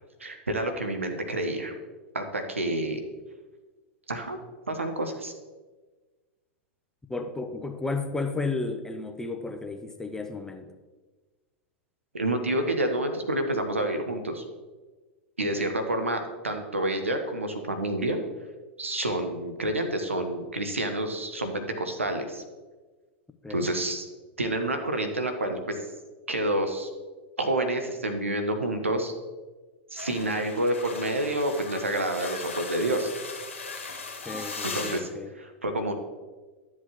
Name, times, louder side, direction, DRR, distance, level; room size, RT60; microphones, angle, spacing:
voice 1, 0.2-1.7 2.1-3.0 4.1-4.4 4.7-5.3 12.1-14.4 15.4-18.2 18.8-22.4 23.5-24.1 24.4-25.8 26.3-26.9 27.4-29.1 29.9-33.1 34.6-35.1 35.3-35.9, right 1 dB, 90° right, 6 dB, 1.0 m, -28 dB
voice 2, 7.1-10.7 15.5-15.7 23.4-23.6 34.2-35.3, left 3 dB, 5° left, 6 dB, 0.7 m, -33 dB
sound 1, 30.0-35.0, left 4 dB, 85° left, 1.3 m, -38 dB
11.5 x 7.6 x 3.0 m, 1.3 s
figure-of-eight pair, 95°, 7 cm